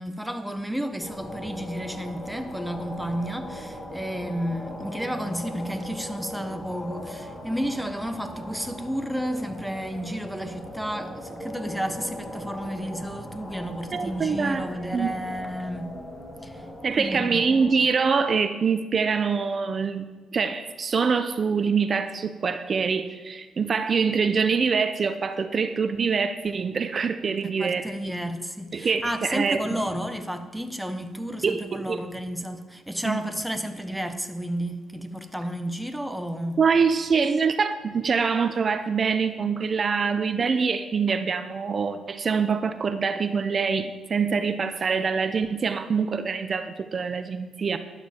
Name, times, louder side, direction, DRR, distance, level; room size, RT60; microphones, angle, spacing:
voice 1, 0.0-15.9 16.4-16.7 17.0-17.4 27.4-36.6, equal, ahead, 1.0 m, -32 dB
sound 1, 1.0-17.9, left 1 dB, 15° left, 2.3 m, -39 dB
voice 2, 13.9-14.6 14.9-15.1 16.8-27.9 28.7-29.6 31.4-32.0 33.0-33.2 36.6-47.8, right 5 dB, 45° right, 0.7 m, -25 dB
12.0 x 11.5 x 4.5 m
cardioid pair, 90°, 0 cm